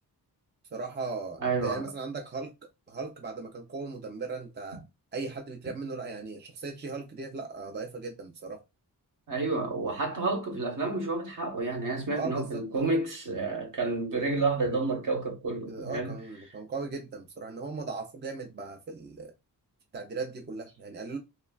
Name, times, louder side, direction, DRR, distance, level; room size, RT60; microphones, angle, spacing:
voice 1, 0.7-2.5 2.9-4.8 5.1-8.6 12.1-12.8 15.7-19.3 19.9-21.2, right 4 dB, 30° right, 0.4 m, -37 dB
voice 2, 1.4-1.8 9.3-16.1, right 3 dB, 55° right, 1.0 m, -30 dB
3.2 x 2.2 x 2.2 m
wide cardioid pair, 125°, 39 cm